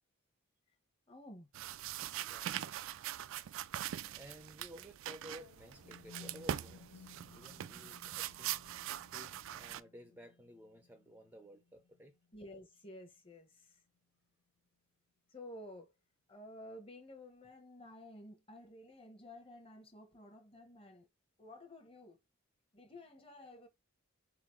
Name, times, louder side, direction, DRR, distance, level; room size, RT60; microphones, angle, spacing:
voice 1, 1.1-1.5 4.0-4.2 12.3-13.8 15.3-15.9 16.3-21.1 21.4-22.2 22.7-23.7, left 1 dB, 25° left, 1.0 m, -53 dB
sound 1, 1.5-9.8, right 11 dB, 60° right, 0.3 m, -42 dB
voice 2, 1.8-2.5 4.1-8.6 9.1-12.1, equal, 10° right, 0.5 m, -55 dB
sound 2, 5.3-13.3, left 4 dB, 65° left, 0.6 m, -60 dB
4.0 x 3.8 x 3.1 m
head